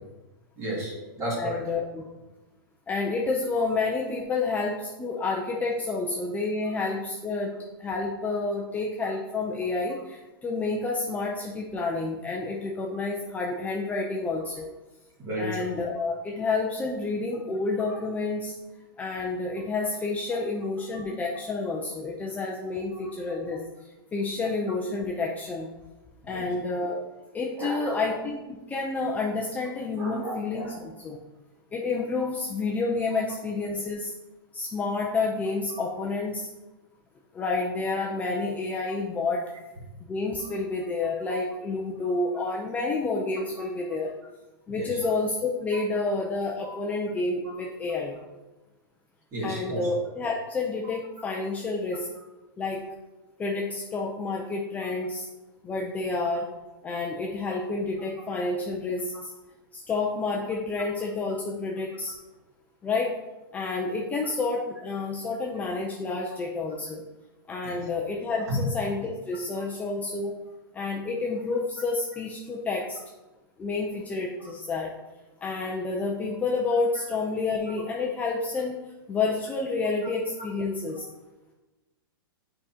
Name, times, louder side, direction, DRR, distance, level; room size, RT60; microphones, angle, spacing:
voice 1, 0.6-1.6 15.2-15.7 20.9-21.1 26.2-26.5 27.6-28.0 30.0-30.7 35.7-35.8 44.7-45.0 46.0-46.1 46.6-46.7 47.4-47.6 49.3-49.9 67.6-67.8 68.5-68.6 77.7-77.8 80.9-81.0, right 1 dB, 25° right, -4 dB, 2.2 m, -33 dB
voice 2, 1.4-2.0 2.9-14.7 15.4-18.5 19.0-23.6 24.1-25.7 26.2-27.0 27.3-31.2 31.7-34.1 34.5-36.5 37.3-39.4 40.0-44.1 44.7-48.1 49.4-52.1 52.6-52.8 53.4-55.3 55.6-56.5 56.8-59.3 59.7-62.1 62.8-63.1 63.5-67.0 67.5-70.4 70.7-73.0 73.6-74.9 75.4-78.8 79.1-81.0, left 3 dB, 10° left, -2 dB, 0.5 m, -29 dB
7.7 x 4.9 x 2.8 m, 1.1 s
hypercardioid pair, 150°, 12 cm